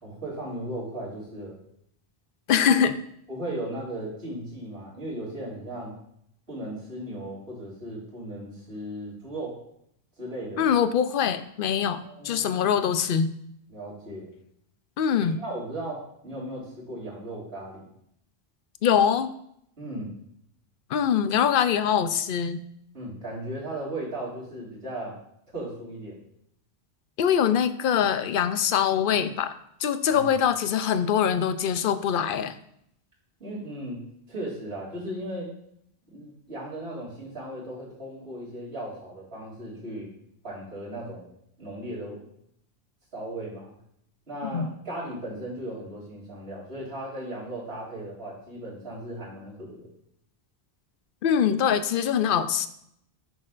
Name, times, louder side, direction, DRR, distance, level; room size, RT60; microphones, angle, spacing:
voice 1, 0.0-1.6 3.3-5.9 6.5-9.6 10.2-10.7 12.0-12.5 13.7-14.3 15.2-17.9 19.8-20.2 22.9-25.2 25.5-26.2 30.1-30.3 33.4-34.0 34.3-35.5 36.1-40.1 40.4-41.3 41.6-42.3 43.1-43.7 44.3-49.9, right 1 dB, 80° right, -6 dB, 3.5 m, -36 dB
voice 2, 2.5-2.9 10.6-13.3 15.0-15.4 18.8-19.3 20.9-22.6 27.2-29.5 29.8-32.6 44.5-44.7 51.2-52.7, left 8 dB, 65° left, 11 dB, 0.7 m, -23 dB
9.3 x 6.6 x 2.5 m, 0.72 s
omnidirectional pair, 1.0 m